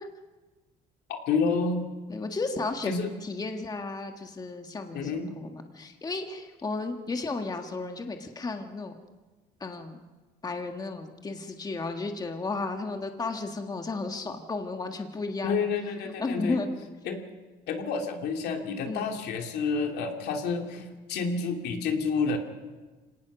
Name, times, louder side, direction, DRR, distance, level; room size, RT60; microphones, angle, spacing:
voice 1, 1.1-1.9 2.8-3.1 4.9-5.3 15.4-16.6 17.0-17.2 17.7-22.4, left 4 dB, 75° left, 3 dB, 2.7 m, -29 dB
voice 2, 2.1-2.9 3.2-8.9 9.6-10.0 10.4-15.6 16.1-16.7 18.9-19.1, left 3 dB, 25° left, 5 dB, 1.6 m, -33 dB
25.5 x 18.5 x 6.2 m, 1.3 s
cardioid pair, 110°, 17 cm